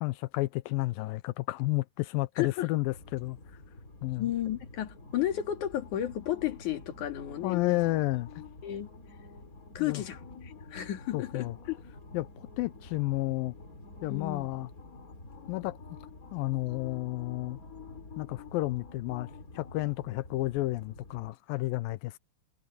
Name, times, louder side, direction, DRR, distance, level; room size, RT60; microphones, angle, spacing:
voice 1, 0.0-3.4 4.0-4.3 7.4-8.3 9.8-10.0 11.1-11.6 12.1-13.5 14.0-14.7 15.5-15.8 16.3-17.6 18.2-22.2, left 19 dB, 90° left, 2.5 m, -31 dB
voice 2, 2.4-2.7 4.2-7.8 8.6-8.9 9.7-11.8 14.1-14.5, left 12 dB, 60° left, 3.4 m, -33 dB
sound 1, 2.9-21.3, left 3 dB, 25° left, 3.7 m, -49 dB
omnidirectional pair, 4.1 m